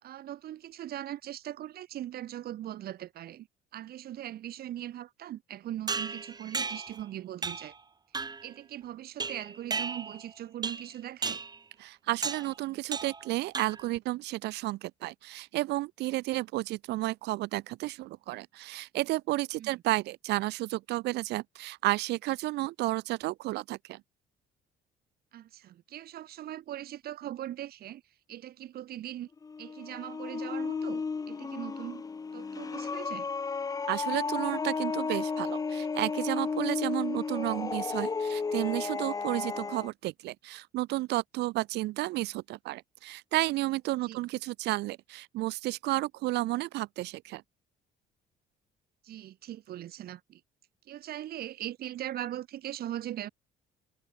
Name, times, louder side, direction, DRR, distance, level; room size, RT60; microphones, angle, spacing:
voice 1, 0.0-3.5 3.7-7.7 8.4-11.4 19.6-19.7 25.3-28.0 28.3-29.3 29.6-32.0 32.3-33.3 39.3-39.5 43.9-44.2 49.0-50.4 50.9-53.3, right 12 dB, 65° right, 4.9 m, -40 dB
sound 1, 5.9-7.0 7.4-7.8 8.1-8.5 9.2-10.3 10.6-10.9 11.2-11.6 12.2-12.5 12.9-13.3 13.5-14.0, right 4 dB, 25° right, 2.6 m, -35 dB
voice 2, 11.8-24.0 33.9-47.4, right 18 dB, 85° right, 3.6 m, -32 dB
sound 2, 29.4-39.9, left 5 dB, 20° left, 0.7 m, -33 dB
cardioid pair, 110°, 17 cm